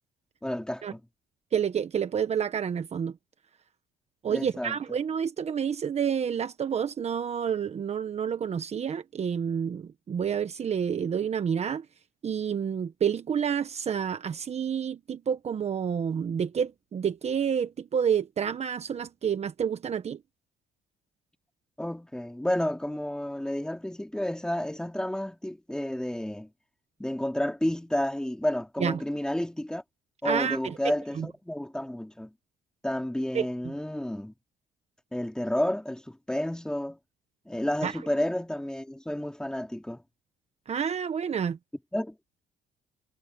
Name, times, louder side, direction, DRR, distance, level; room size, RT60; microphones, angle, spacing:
voice 1, 0.4-1.0 4.3-4.8 21.8-26.5 27.0-29.8 30.2-32.3 32.8-34.3 35.1-37.0 37.5-40.0 41.9-42.2, left 1 dB, 5° left, 3.0 m, -31 dB
voice 2, 1.5-3.1 4.2-11.8 12.2-20.2 28.8-29.0 30.2-31.3 33.3-33.7 37.8-37.9 40.7-41.6, right 7 dB, 40° right, 1.3 m, -29 dB
cardioid pair, 110°, 17 cm